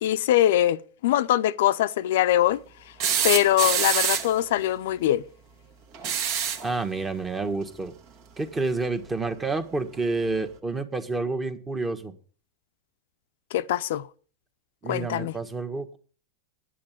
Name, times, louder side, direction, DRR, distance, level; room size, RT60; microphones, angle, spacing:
voice 1, 0.0-2.6 3.2-5.2 13.5-14.1 14.9-15.3, left 13 dB, 75° left, 0.6 m, -22 dB
sound 1, 3.0-4.4 5.9-6.7 8.4-8.5 9.9-10.0, right 8 dB, 50° right, 1.7 m, -26 dB
voice 2, 6.6-7.9 8.4-12.1 14.8-16.0, right 3 dB, 15° right, 1.5 m, -29 dB
10.0 x 7.7 x 9.0 m
supercardioid pair, 130°, 0 cm